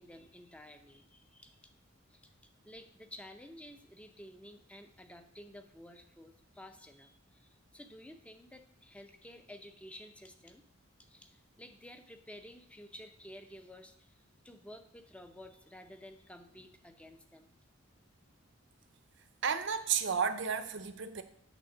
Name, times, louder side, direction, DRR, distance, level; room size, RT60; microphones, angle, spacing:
voice 1, 0.0-1.6 2.1-2.3 2.6-10.6 11.0-17.6, left 1 dB, 5° left, 7 dB, 0.6 m, -52 dB
voice 2, 19.4-21.2, right 6 dB, 60° right, 10 dB, 0.6 m, -32 dB
8.2 x 3.6 x 6.6 m, 0.70 s
head